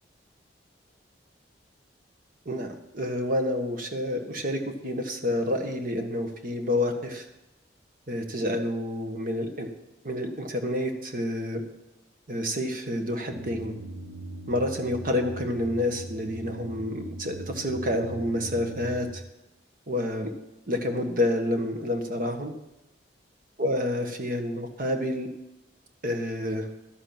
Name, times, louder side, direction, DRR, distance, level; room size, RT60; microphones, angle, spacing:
voice 1, 2.4-7.3 8.1-9.7 10.0-11.6 12.3-13.7 14.5-19.2 19.9-20.3 20.7-22.5 23.6-25.3 26.0-26.7, left 1 dB, 45° right, 5 dB, 1.5 m, -29 dB
sound 1, 13.3-19.1, right 2 dB, 80° right, 2.3 m, -40 dB
12.0 x 8.0 x 6.0 m, 0.97 s
head